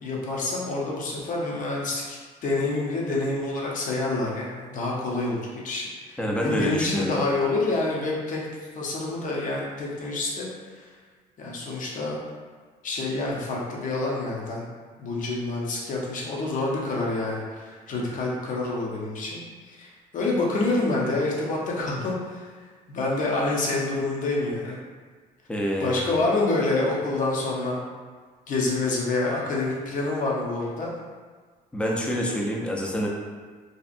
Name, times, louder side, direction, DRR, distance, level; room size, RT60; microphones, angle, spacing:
voice 1, 0.0-2.2 2.4-8.4 8.7-10.9 11.4-12.2 12.8-14.6 15.0-19.4 19.6-22.5 22.9-24.8 25.8-27.8 28.5-30.9, left 2 dB, 50° left, -3 dB, 0.6 m, -27 dB
voice 2, 6.2-7.3 25.5-26.2 31.7-33.1, equal, 5° left, -1 dB, 0.4 m, -27 dB
2.7 x 2.4 x 2.4 m, 1.5 s
cardioid pair, 110°, 17 cm